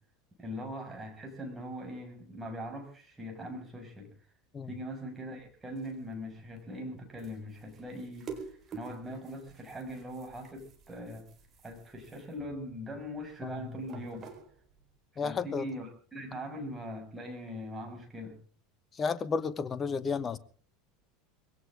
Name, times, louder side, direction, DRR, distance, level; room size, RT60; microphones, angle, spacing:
voice 1, 0.4-4.1 4.7-11.3 11.6-14.3 15.1-18.4, equal, 15° right, 6.1 m, -41 dB
sound 1, 5.4-15.0, right 6 dB, 30° right, 4.5 m, -50 dB
voice 2, 15.2-15.7 18.9-20.4, left 5 dB, 25° left, 1.1 m, -32 dB
21.5 x 17.5 x 3.7 m
figure-of-eight pair, 75°, 0 cm